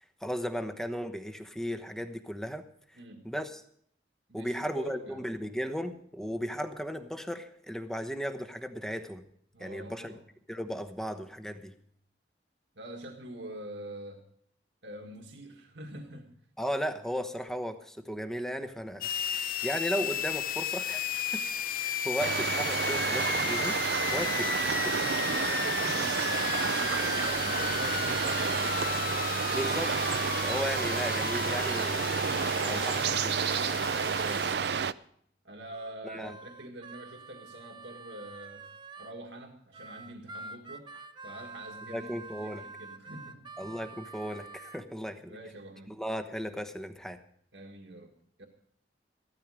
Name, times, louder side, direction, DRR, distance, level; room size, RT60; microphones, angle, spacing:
voice 1, 0.0-2.7 3.2-3.6 4.3-9.2 9.6-10.1 10.5-11.7 16.6-21.4 21.8-23.8 24.1-24.5 29.5-33.5 36.1-36.4 41.9-42.6 43.6-45.4 45.9-47.2, equal, 5° left, 8 dB, 1.0 m, -36 dB
voice 2, 2.9-3.3 4.3-5.3 9.5-10.2 12.8-14.3 14.8-16.3 24.1-24.3 25.2-29.1 34.0-34.8 35.4-38.7 39.0-40.9 41.2-43.4 45.0-46.0 47.5-48.5, right 1 dB, 85° right, 2 dB, 1.8 m, -45 dB
sound 1, 19.0-34.5, left 8 dB, 50° left, 0.7 m, -34 dB
sound 2, 22.2-34.9, right 6 dB, 65° right, 0.5 m, -30 dB
Harmonica, 35.7-39.2 39.7-44.8, right 3 dB, 25° right, 0.9 m, -47 dB
15.5 x 13.0 x 4.9 m, 0.65 s
head